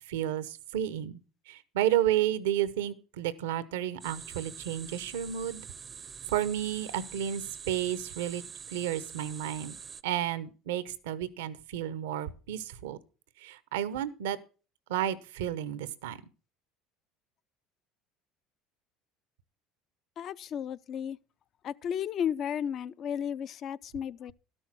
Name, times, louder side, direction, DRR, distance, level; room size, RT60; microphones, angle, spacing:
voice 1, 0.1-1.2 1.5-5.6 6.3-8.4 8.7-9.7 10.0-13.0 13.4-14.4 14.9-16.2, right 11 dB, 85° right, 0.8 m, -31 dB
sound 1, 4.0-10.0, right 6 dB, 35° right, 0.5 m, -45 dB
voice 2, 20.2-21.2 21.6-24.3, left 8 dB, 50° left, 0.4 m, -33 dB
12.5 x 6.4 x 6.0 m
supercardioid pair, 85°, 0 cm